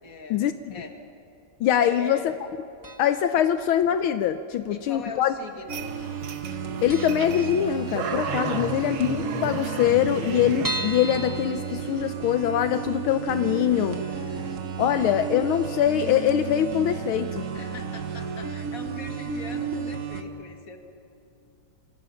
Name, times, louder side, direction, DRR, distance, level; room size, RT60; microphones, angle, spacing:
voice 1, 0.0-0.4 0.7-0.9 1.8-2.3 4.7-5.9 8.3-9.0 17.5-20.8, left 4 dB, 40° left, 4 dB, 2.3 m, -41 dB
voice 2, 1.6-2.3 3.0-5.3 6.8-14.0 14.8-17.5, left 10 dB, 80° left, 9 dB, 1.6 m, -23 dB
sound 1, 2.8-3.4 3.6-3.7 4.7-5.4 5.6-5.8 6.1-6.2 6.5-6.6 6.9-8.2 8.6-8.7 8.9-9.0 9.2-9.3 9.8-12.5 12.9-13.0 13.4-13.5, right 1 dB, 25° right, 0.4 m, -36 dB
sound 2, 5.7-20.2, right 6 dB, 45° right, 1.5 m, -33 dB
sound 3, 5.7-10.7, right 5 dB, 75° right, 2.3 m, -34 dB
27.5 x 25.5 x 5.7 m, 2.6 s
omnidirectional pair, 2.3 m